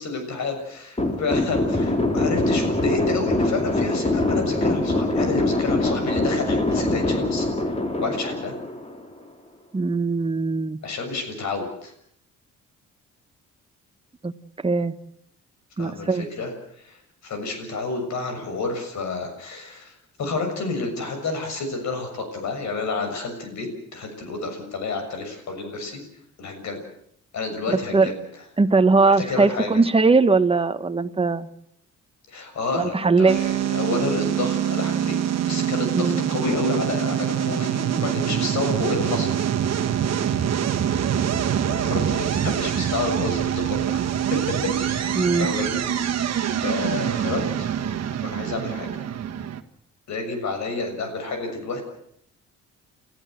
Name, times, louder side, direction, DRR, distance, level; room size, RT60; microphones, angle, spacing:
voice 1, 0.0-8.6 10.8-11.9 15.8-17.0 17.2-19.9 20.2-26.0 26.4-26.8 27.3-28.2 29.1-29.8 32.3-35.2 35.4-39.3 41.7-45.0 45.4-47.4 48.2-48.9 50.1-51.9, left 3 dB, 65° left, 6 dB, 6.9 m, -30 dB
sound 1, 1.0-9.3, left 2 dB, 20° left, 3.6 m, -23 dB
voice 2, 9.7-10.8 14.2-14.3 14.6-14.9 15.8-16.3 27.7-28.1 28.6-31.5 32.7-33.4 35.9-36.2 45.1-45.5, right 3 dB, 20° right, 9 dB, 1.4 m, -20 dB
sound 2, 33.3-49.6, right 9 dB, 60° right, 1.7 m, -25 dB
29.5 x 14.5 x 7.9 m, 0.72 s
cardioid pair, 90°, 30 cm